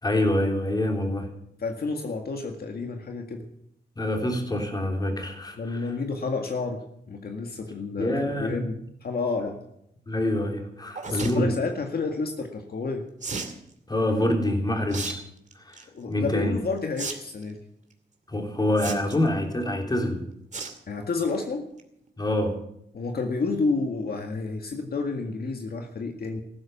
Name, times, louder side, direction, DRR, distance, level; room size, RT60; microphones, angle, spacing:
voice 1, 0.0-1.3 4.0-5.9 8.0-8.6 10.1-11.5 13.9-15.2 15.6-16.5 18.3-20.2 22.2-22.6, left 1 dB, 20° left, 3 dB, 3.6 m, -26 dB
voice 2, 1.6-3.4 5.6-9.6 11.1-13.0 15.9-17.6 20.9-21.7 22.9-26.4, left 4 dB, 60° left, 4 dB, 1.9 m, -30 dB
sound 1, 10.9-11.3 13.2-13.6 14.9-15.1 15.5-15.8 17.0-17.1 17.4-17.5 18.8-19.3 20.5-20.8 21.2-21.4 21.8-21.9 22.1-22.2, right 4 dB, 40° right, 2.5 m, -33 dB
15.0 x 13.0 x 7.2 m, 0.75 s
wide cardioid pair, 120°, 18 cm